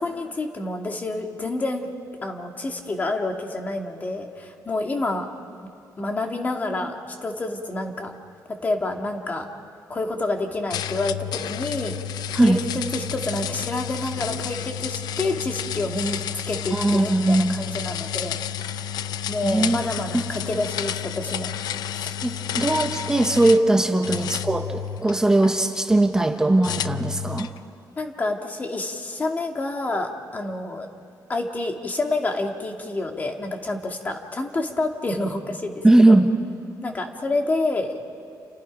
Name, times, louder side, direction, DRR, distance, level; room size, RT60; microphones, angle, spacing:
voice 1, 0.0-1.9 2.2-5.3 6.0-8.1 8.5-9.5 9.9-12.0 12.3-12.6 12.9-18.4 19.3-21.5 21.9-22.2 23.8-24.0 28.0-30.9 31.3-36.2 36.8-38.0, left 2 dB, 25° left, 3 dB, 1.8 m, -28 dB
sound 1, 10.7-23.7 24.0-25.5 26.6-27.6, left 9 dB, 80° left, 0.6 m, -31 dB
voice 2, 16.7-17.5 19.4-19.8 20.1-20.2 22.2-27.5 35.8-36.3, right 2 dB, 10° right, 5 dB, 1.0 m, -19 dB
29.0 x 28.5 x 5.2 m, 2.4 s
wide cardioid pair, 175°, 7 cm